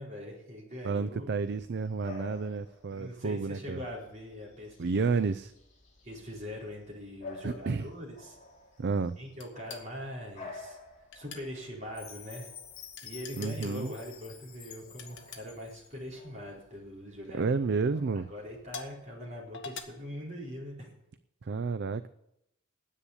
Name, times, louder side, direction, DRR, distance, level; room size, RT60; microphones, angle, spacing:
voice 1, 0.0-1.4 2.9-5.3 6.0-8.4 9.2-10.8 11.1-12.5 13.0-17.5 18.1-20.9, left 1 dB, 35° right, -4 dB, 4.5 m, -42 dB
voice 2, 0.8-3.8 4.8-5.5 7.4-7.9 8.8-9.2 13.3-13.9 17.3-18.3 21.4-22.1, right 4 dB, 55° right, 13 dB, 0.4 m, -31 dB
Bark / Bird vocalization bird call bird song, 1.4-18.9, left 4 dB, 35° left, 2.7 m, -52 dB
sound 1, 9.4-9.9 11.1-11.5 13.0-13.8 15.0-15.4 16.5-16.7 17.4-17.5 18.7-19.0 19.5-19.8, left 5 dB, 60° left, 1.6 m, -43 dB
Chime, 11.9-16.0, left 9 dB, 85° left, 2.6 m, -50 dB
10.0 x 8.5 x 9.7 m, 0.82 s
head